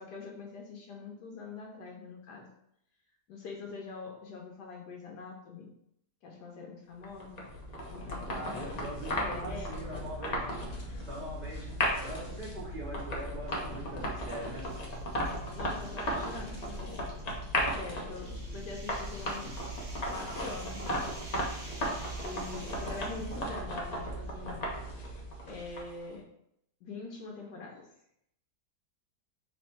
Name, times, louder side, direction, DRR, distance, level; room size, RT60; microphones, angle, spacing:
voice 1, 0.0-2.5 3.3-5.7 6.2-7.4 7.9-10.0 15.6-17.1 17.7-19.7 20.0-21.0 22.2-24.7 25.4-26.2 26.8-27.8, left 4 dB, 75° left, -1 dB, 1.3 m, -44 dB
sound 1, 7.0-26.1, equal, 40° left, 0.6 m, -36 dB
voice 2, 8.3-10.4 11.0-14.7, right 1 dB, 25° right, -6 dB, 1.6 m, -42 dB
sound 2, 11.5-12.0 12.4-12.5 13.5-23.6, right 2 dB, 75° right, 1.8 m, -51 dB
3.6 x 3.4 x 4.3 m, 0.75 s
omnidirectional pair, 1.8 m